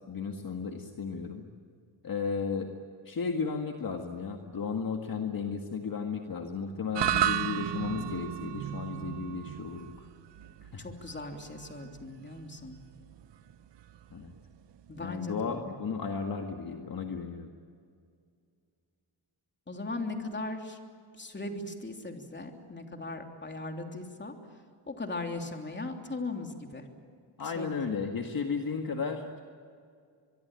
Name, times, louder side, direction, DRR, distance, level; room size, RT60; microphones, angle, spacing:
voice 1, 0.1-1.5 2.0-2.7 3.0-10.1 10.6-10.9 14.1-14.3 15.0-17.5 27.4-29.4, left 5 dB, 45° left, 3 dB, 1.9 m, -34 dB
sound 1, 6.9-15.4, right 11 dB, 60° right, 1.0 m, -35 dB
voice 2, 10.8-12.8 14.9-15.8 19.7-20.8 21.2-24.3 24.9-26.8 27.5-27.8, left 2 dB, 20° left, 3 dB, 3.2 m, -38 dB
23.5 x 23.5 x 9.0 m, 2.2 s
wide cardioid pair, 120°, 48 cm